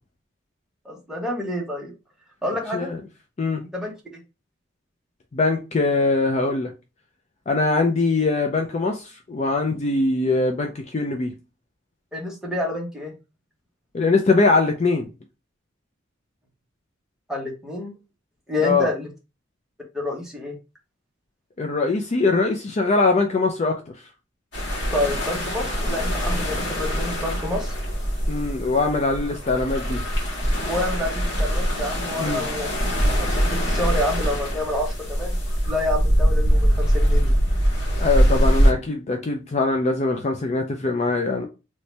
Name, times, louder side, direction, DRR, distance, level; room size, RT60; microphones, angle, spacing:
voice 1, 0.8-1.9 2.4-2.9 3.7-3.9 12.1-13.1 17.3-17.9 18.5-19.1 19.9-20.6 24.9-27.7 30.7-32.7 33.2-35.4 35.7-37.3, left 1 dB, 5° right, 1.1 m, -28 dB
voice 2, 5.3-6.7 7.5-11.3 13.9-15.1 18.6-18.9 21.6-23.8 28.3-30.0 32.2-32.4 38.0-41.4, left 3 dB, 35° left, 0.4 m, -22 dB
sound 1, 24.5-38.7, equal, 60° left, 1.7 m, -22 dB
3.1 x 2.7 x 3.2 m
head